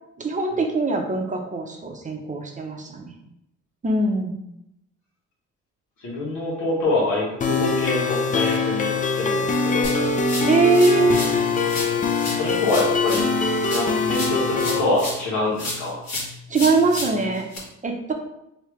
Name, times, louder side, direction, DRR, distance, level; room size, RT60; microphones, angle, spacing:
voice 1, 0.2-3.1 3.8-4.4 10.5-11.2 16.5-17.4 17.8-18.1, right 3 dB, 25° right, 2 dB, 0.6 m, -21 dB
voice 2, 6.0-8.9 9.1-9.9 12.3-13.3 13.7-16.0, left 2 dB, 90° left, -5 dB, 1.5 m, -25 dB
sound 1, 7.4-14.8, left 4 dB, 25° left, 0.4 m, -23 dB
sound 2, 9.8-11.4 11.7-15.3 15.6-17.6, left 2 dB, 60° left, 1.3 m, -32 dB
Piano, 9.9-12.4, right 11 dB, 75° right, 0.6 m, -33 dB
3.2 x 2.8 x 3.1 m, 0.82 s
cardioid pair, 90°, 30 cm